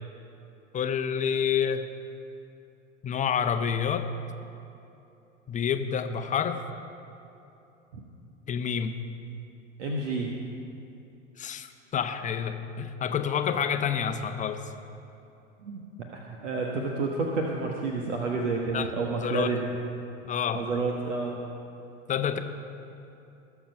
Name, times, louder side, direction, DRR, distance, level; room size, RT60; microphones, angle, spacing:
voice 1, 0.7-1.9 3.0-4.0 5.5-6.6 8.5-9.0 11.4-14.7 18.7-19.6 20.2-20.7 22.1-22.4, left 7 dB, 20° left, 8 dB, 0.8 m, -28 dB
voice 2, 9.8-10.3 15.6-15.8 16.1-19.7 20.5-21.4, right 3 dB, 65° right, 0 dB, 1.4 m, -30 dB
20.0 x 7.1 x 5.4 m, 2.8 s
figure-of-eight pair, 85°, 39 cm